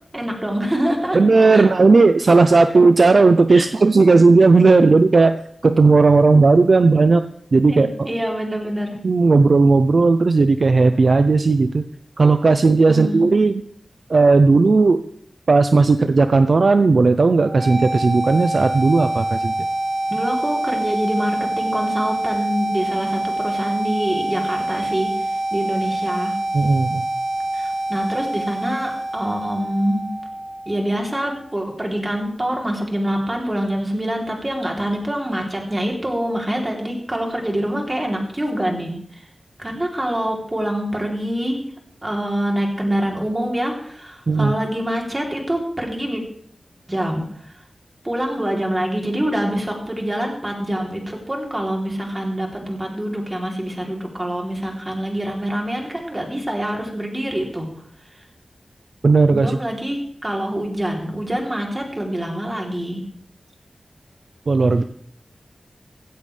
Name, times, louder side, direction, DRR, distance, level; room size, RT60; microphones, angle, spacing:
voice 1, 0.1-1.2 1.5-1.7 3.5-3.7 7.7-9.0 12.9-13.3 20.1-26.3 27.5-30.1 30.6-39.3 39.6-41.6 42.0-46.2 46.9-47.6 48.0-57.7 59.3-63.0, right 1 dB, 20° right, 1 dB, 3.2 m, -25 dB
voice 2, 1.1-5.4 5.6-7.2 7.5-8.1 9.0-11.8 12.2-13.6 14.1-15.0 15.5-19.5 26.5-27.0 44.3-44.5 59.0-59.6 64.5-64.8, right 3 dB, 55° right, 9 dB, 0.6 m, -14 dB
sound 1, 17.4-31.4, right 1 dB, 80° right, 1.5 m, -26 dB
16.0 x 15.0 x 3.3 m, 0.63 s
wide cardioid pair, 110°, 0 cm